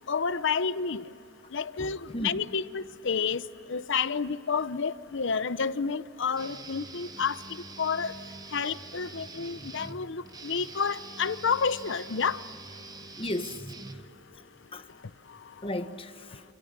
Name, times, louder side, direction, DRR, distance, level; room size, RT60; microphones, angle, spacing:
voice 1, 0.1-1.0 1.5-3.4 3.7-7.4 7.8-8.1 8.5-12.4, left 5 dB, 60° left, 0.7 m, -30 dB
voice 2, 1.8-2.5 13.2-13.7 14.7-14.9 15.6-16.4, left 1 dB, 25° left, 1.2 m, -35 dB
Guitar, 6.4-14.4, right 3 dB, 20° right, 1.0 m, -45 dB
28.0 x 27.0 x 6.7 m
head